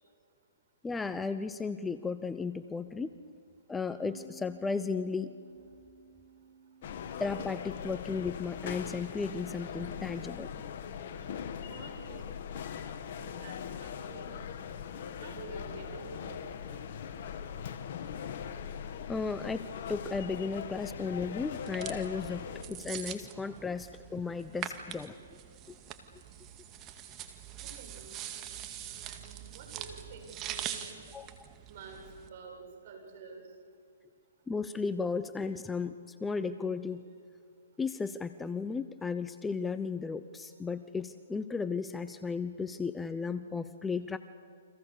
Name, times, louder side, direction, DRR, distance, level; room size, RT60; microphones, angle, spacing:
voice 1, 0.8-3.1 3.7-5.4 7.2-10.5 19.1-25.2 25.7-25.8 31.1-31.5 34.5-37.0 37.8-44.2, left 4 dB, 10° left, 11 dB, 0.7 m, -35 dB
Bass guitar, 4.0-10.3, left 1 dB, 80° left, 6.3 m, -57 dB
sound 1, 6.8-22.6, left 8 dB, 55° left, 2.0 m, -41 dB
voice 2, 11.7-12.4 13.2-14.5 15.2-16.4 27.6-30.9 31.7-33.4, right 4 dB, 50° right, 2 dB, 7.6 m, -49 dB
sound 2, 21.5-32.3, right 10 dB, 25° right, 2.1 m, -43 dB
29.5 x 25.5 x 6.8 m, 2.3 s
hypercardioid pair, 135°, 0 cm